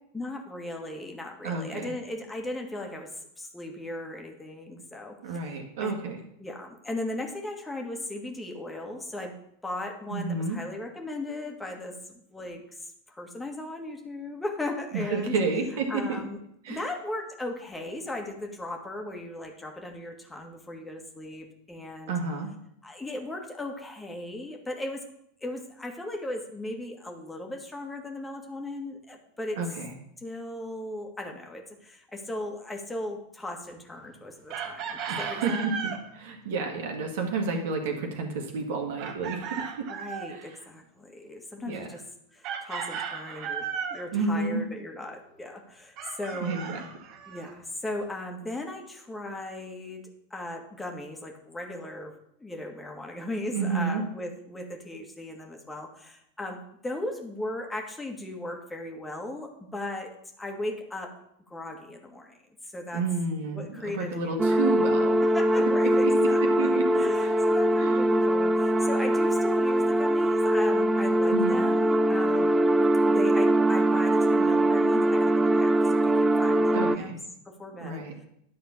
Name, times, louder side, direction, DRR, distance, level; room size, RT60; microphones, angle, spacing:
voice 1, 0.1-6.0 6.4-9.4 9.6-12.0 12.3-15.4 15.9-16.4 16.7-22.1 22.8-25.1 25.4-29.6 30.2-35.7 39.9-42.0 42.3-46.6 47.3-52.1 52.4-61.2 61.5-62.4 62.6-63.0 63.5-64.8 65.3-72.6 73.1-77.2 77.5-78.3, left 1 dB, 10° left, 2 dB, 1.8 m, -37 dB
voice 2, 1.4-1.9 5.2-6.2 10.1-10.6 14.9-16.2 16.6-16.8 22.1-22.5 29.6-29.9 35.1-35.6 36.1-39.9 40.3-40.5 41.7-41.9 44.1-44.6 46.4-46.6 53.5-54.0 62.9-65.2 66.0-67.3 67.8-68.0 71.3-71.6 76.7-77.2 77.8-78.1, right 4 dB, 65° right, 3 dB, 1.8 m, -30 dB
Chicken rooster, 34.5-36.0 39.0-40.3 42.4-44.1 46.0-47.5, right 7 dB, 45° right, 1.4 m, -35 dB
sound 1, 64.4-77.0, right 1 dB, 15° right, 0.4 m, -22 dB
10.5 x 4.3 x 7.1 m, 0.74 s
figure-of-eight pair, 90°, 0 cm